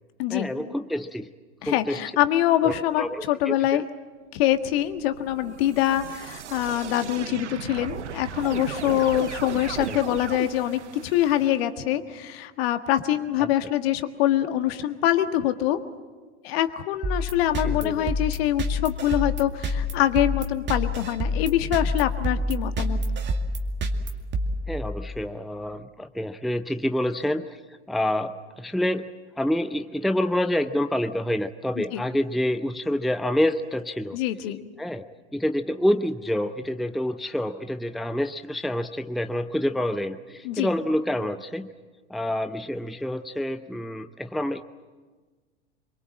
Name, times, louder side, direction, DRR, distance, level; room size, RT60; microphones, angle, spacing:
voice 1, 0.3-1.3 1.6-2.0 2.6-3.8 9.9-10.0 13.4-13.5 17.6-18.1 24.7-27.6 27.9-29.1 29.4-34.2 34.8-35.1 35.3-41.7 42.1-44.6, left 1 dB, ahead, 9 dB, 0.7 m, -27 dB
voice 2, 1.6-3.8 4.3-15.8 16.4-23.0 31.8-32.0 34.1-34.6 40.4-40.7, left 12 dB, 60° left, 8 dB, 1.7 m, -24 dB
sound 1, 4.5-11.6, right 9 dB, 80° right, 1.0 m, -36 dB
sound 2, 17.0-25.2, left 1 dB, 30° right, 2.3 m, -28 dB
26.0 x 23.0 x 7.5 m, 1.4 s
hypercardioid pair, 95°, 35 cm